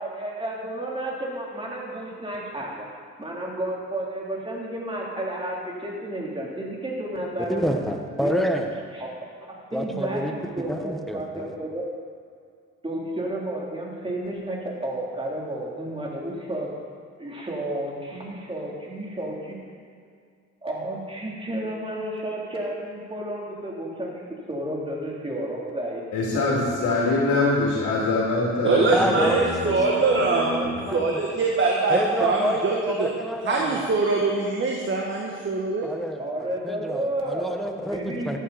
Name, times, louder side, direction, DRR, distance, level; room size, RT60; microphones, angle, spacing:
voice 1, 0.0-2.9 3.2-7.7 8.2-8.5 9.0-9.1 9.5-11.8 12.8-16.7 17.2-19.6 20.6-26.4 27.0-27.2 36.2-37.5 37.9-38.4, right 1 dB, 20° right, -4 dB, 3.6 m, -32 dB
voice 2, 7.4-8.7 9.7-11.5 28.9-30.2 30.4-31.4 31.9-33.9 35.8-38.4, equal, ahead, 3 dB, 1.5 m, -28 dB
voice 3, 26.1-29.7 30.1-30.8, left 2 dB, 80° left, -5 dB, 3.0 m, -24 dB
voice 4, 28.6-30.5 30.9-33.1 33.4-35.9, right 3 dB, 40° right, -1 dB, 1.7 m, -23 dB
14.5 x 11.0 x 4.3 m, 2.1 s
cardioid pair, 90°, 30 cm